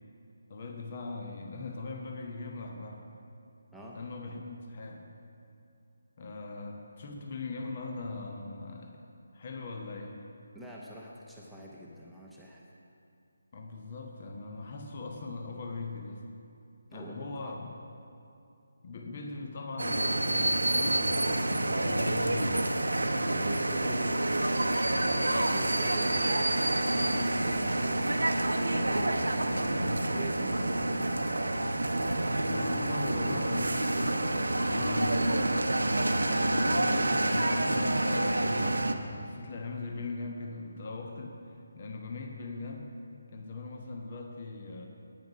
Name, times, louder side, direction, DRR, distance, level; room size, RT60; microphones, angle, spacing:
voice 1, 0.5-3.0 3.9-5.1 6.2-9.0 9.3-10.2 13.5-16.2 16.9-17.7 18.8-22.7 32.5-36.1 36.5-41.4 41.8-42.9 43.3-44.9, left 3 dB, 40° left, 2 dB, 1.1 m, -40 dB
voice 2, 10.5-12.6 16.9-17.5 23.3-24.6 25.0-26.4 26.9-29.6 30.1-31.2 33.0-33.5, right 1 dB, ahead, -7 dB, 0.9 m, -45 dB
sound 1, 19.8-38.9, right 1 dB, 75° right, 0.7 m, -28 dB
9.4 x 9.2 x 6.2 m, 2.6 s
figure-of-eight pair, 150°, 0 cm